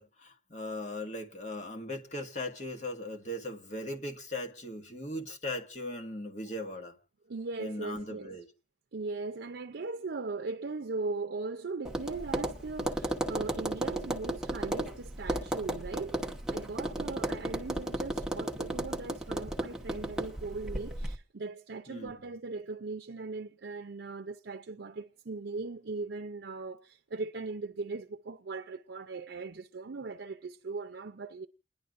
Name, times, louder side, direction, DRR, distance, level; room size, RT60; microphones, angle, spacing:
voice 1, 0.0-6.9 7.6-8.5 21.9-22.1, left 1 dB, 40° left, 1.7 m, -38 dB
voice 2, 7.3-8.3 8.9-16.2 16.5-31.5, right 3 dB, 85° right, 0.6 m, -39 dB
Tap, 11.8-21.2, right 1 dB, 5° right, 1.0 m, -34 dB
29.5 x 10.5 x 2.5 m
head